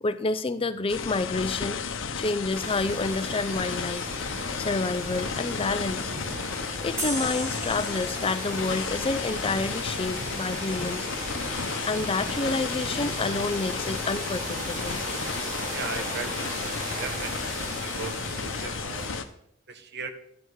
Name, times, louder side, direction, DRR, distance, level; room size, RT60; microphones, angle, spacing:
voice 1, 0.0-1.8 2.2-6.1 6.8-11.1 11.7-15.0, left 3 dB, 30° left, 12 dB, 0.5 m, -29 dB
sound 1, 0.9-19.2, left 5 dB, 75° left, 0.9 m, -33 dB
sound 2, 2.5-19.2, right 1 dB, 40° right, 2.8 m, -36 dB
sound 3, 7.0-10.3, right 1 dB, 15° right, 1.9 m, -38 dB
voice 2, 15.7-19.2 19.7-20.1, right 4 dB, 60° right, 9 dB, 1.3 m, -38 dB
12.5 x 8.0 x 4.7 m, 0.71 s
head